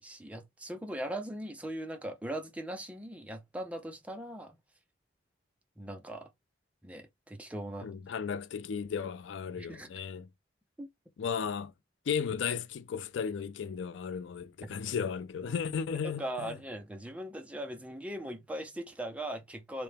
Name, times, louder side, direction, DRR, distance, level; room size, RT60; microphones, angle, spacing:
voice 1, 0.0-4.6 5.8-6.3 6.8-7.9 9.6-9.9 10.8-10.9 14.6-14.7 16.0-19.8, right 1 dB, 5° right, 0.5 m, -40 dB
voice 2, 7.8-10.3 11.2-11.7 12.1-16.6, left 6 dB, 85° left, 0.4 m, -35 dB
3.3 x 2.8 x 3.3 m
head